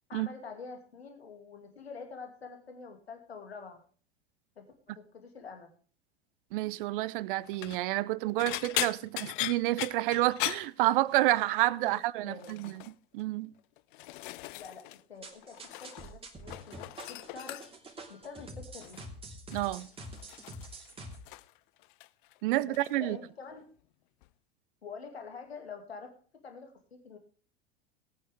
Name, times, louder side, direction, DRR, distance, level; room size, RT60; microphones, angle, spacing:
voice 1, 0.1-3.8 4.6-5.7 11.8-11.9 12.2-12.6 14.6-14.8 15.1-17.6 18.1-19.0 22.6-23.6 24.8-26.1 26.4-27.2, left 5 dB, 80° left, 2.4 m, -46 dB
voice 2, 6.5-12.7 13.1-13.5 19.5-19.9 22.4-23.2, right 17 dB, 55° right, 0.8 m, -29 dB
sound 1, 7.4-7.8 8.4-11.4 11.7-12.1 12.4-12.9 13.6-15.0 15.3-16.1 16.4-17.9 18.8-19.1 19.5-21.6 21.8-22.4 22.7-22.9 24.2-24.3, left 19 dB, 55° left, 0.6 m, -39 dB
sound 2, 15.2-21.2, right 1 dB, 20° right, 2.9 m, -46 dB
18.5 x 9.3 x 3.5 m
figure-of-eight pair, 80°, 31 cm